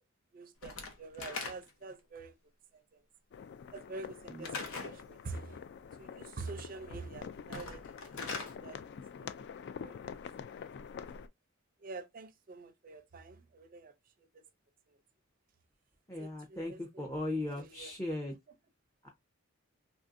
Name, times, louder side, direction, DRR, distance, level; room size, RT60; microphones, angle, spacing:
voice 1, 0.3-2.3 2.7-3.0 3.7-5.6 6.0-7.8 8.3-8.8 9.2-9.3 9.8-10.0 11.8-13.9 14.2-14.4 16.2-17.0 17.6-17.9, right 3 dB, 45° right, 0.5 m, -46 dB
Slam / Wood, 0.6-1.9 4.4-5.0 7.4-8.6, left 3 dB, 80° left, 0.8 m, -41 dB
sound 1, 3.3-11.3, left 6 dB, 55° left, 0.3 m, -46 dB
voice 2, 16.1-18.3 19.0-19.1, left 1 dB, 15° left, 0.6 m, -38 dB
3.2 x 2.5 x 2.5 m
head